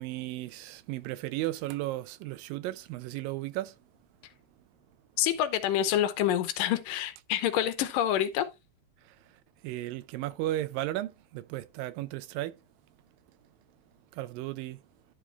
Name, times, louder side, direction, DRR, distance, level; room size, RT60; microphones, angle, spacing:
voice 1, 0.0-3.8 9.0-12.6 14.1-14.8, right 15 dB, 90° right, 2.4 m, -35 dB
voice 2, 5.2-8.5, left 11 dB, 80° left, 2.4 m, -27 dB
11.0 x 5.1 x 3.2 m
omnidirectional pair, 3.9 m